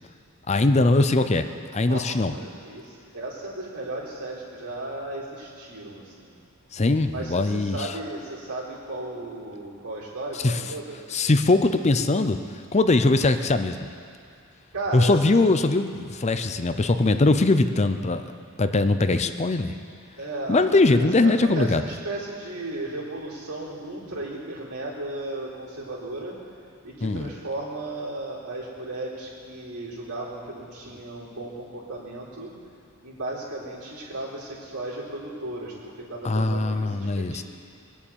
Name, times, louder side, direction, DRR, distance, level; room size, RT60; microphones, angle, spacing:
voice 1, 0.5-1.5 1.7-2.3 6.7-7.9 10.4-10.6 11.1-12.4 12.7-13.9 14.9-18.3 18.6-19.8 20.5-21.8 27.0-27.3 36.2-37.4, left 2 dB, 30° left, 9 dB, 0.6 m, -21 dB
voice 2, 1.9-6.3 7.1-11.0 14.7-15.1 20.2-20.6 20.9-26.4 26.8-32.5 33.0-37.4, right 2 dB, 85° right, -5 dB, 4.0 m, -35 dB
21.5 x 7.2 x 8.7 m, 2.4 s
head